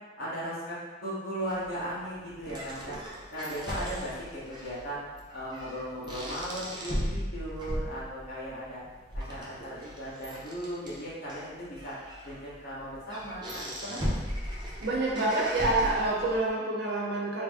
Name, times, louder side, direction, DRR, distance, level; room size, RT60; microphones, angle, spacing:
voice 1, 0.2-3.0 3.3-5.0 5.3-8.8 9.1-11.9 12.2-14.1, equal, 55° left, -9 dB, 1.2 m, -37 dB
sound 1, 1.5-16.5, equal, 25° right, 0.6 m, -38 dB
voice 2, 14.8-17.4, right 2 dB, 65° right, -4 dB, 0.8 m, -27 dB
3.5 x 2.2 x 3.5 m, 1.3 s
head